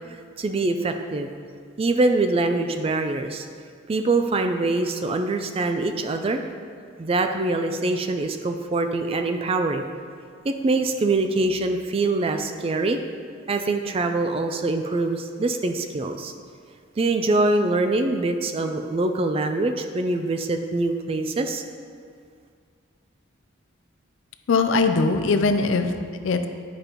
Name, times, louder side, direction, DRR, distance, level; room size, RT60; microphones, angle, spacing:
voice 1, 0.4-1.3 1.8-3.5 3.9-6.4 7.0-9.9 10.4-13.0 13.5-16.3 17.0-21.6, right 2 dB, 30° right, 6 dB, 0.3 m, -24 dB
voice 2, 24.5-26.5, left 3 dB, 70° left, 8 dB, 0.4 m, -21 dB
9.6 x 5.1 x 2.9 m, 2.2 s
head